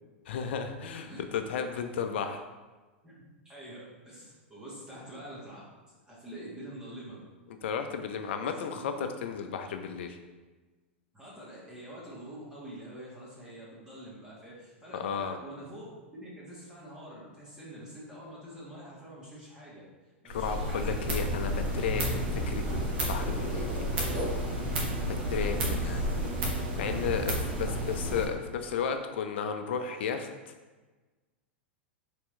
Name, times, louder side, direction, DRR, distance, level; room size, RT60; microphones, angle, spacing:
voice 1, 0.3-2.4 7.6-10.2 14.9-15.4 20.3-23.9 25.1-26.0 26.8-30.5, left 6 dB, 65° left, 7 dB, 0.5 m, -34 dB
voice 2, 3.0-5.6 6.0-7.2 8.4-8.8 11.1-19.8 20.2-21.3 25.8-26.6 27.3-27.4, right 1 dB, 10° right, -7 dB, 1.4 m, -46 dB
sound 1, 20.3-28.3, equal, 65° right, 1.3 m, -31 dB
4.4 x 3.5 x 3.2 m, 1.3 s
hypercardioid pair, 105°, 6 cm